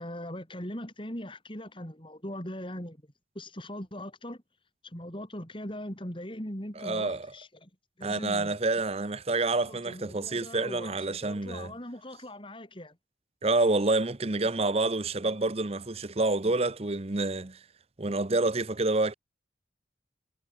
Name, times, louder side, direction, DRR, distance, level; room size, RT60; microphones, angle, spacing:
voice 1, 0.0-3.0 3.4-4.4 4.8-7.7 8.0-8.6 9.5-13.0, left 1 dB, 30° left, 5.8 m, -40 dB
voice 2, 6.8-7.3 8.0-11.7 13.4-17.6 18.0-19.1, right 2 dB, 35° right, 0.9 m, -28 dB
head